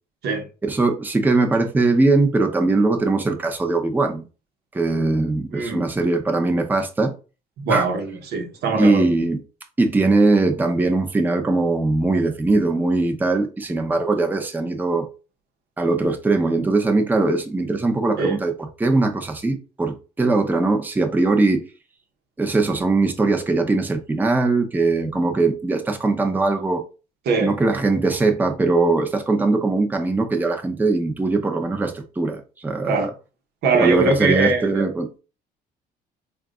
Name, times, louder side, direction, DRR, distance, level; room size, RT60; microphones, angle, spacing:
voice 1, 0.6-4.2 4.7-7.1 7.7-7.8 8.8-9.4 9.8-15.1 15.8-18.5 18.8-21.6 22.4-26.8 27.4-33.1 33.8-35.2, right 3 dB, 10° right, 0.6 m, -20 dB
voice 2, 5.5-5.8 7.6-9.1 18.2-18.4 27.3-27.6 32.8-33.1 33.6-34.8, right 3 dB, 75° right, 0.9 m, -21 dB
3.8 x 2.3 x 3.7 m
cardioid pair, 110°, 17 cm